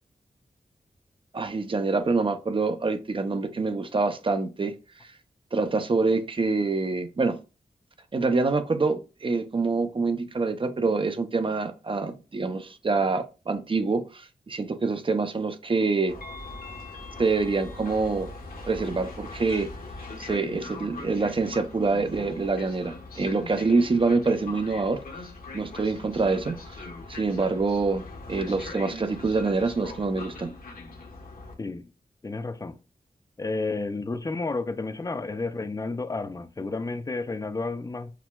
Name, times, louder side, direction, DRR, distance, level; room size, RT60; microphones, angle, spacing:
voice 1, 1.3-4.8 5.0-5.1 5.5-7.4 8.1-16.1 17.2-18.3 18.7-19.7 20.2-25.0 25.5-30.5, right 3 dB, 35° right, 0.5 m, -26 dB
Train, 16.1-31.5, left 3 dB, 70° left, 1.1 m, -41 dB
voice 2, 31.6-31.9 32.2-32.8 33.4-38.2, left 3 dB, 20° left, 0.4 m, -31 dB
5.8 x 2.1 x 2.2 m
wide cardioid pair, 85°, 16 cm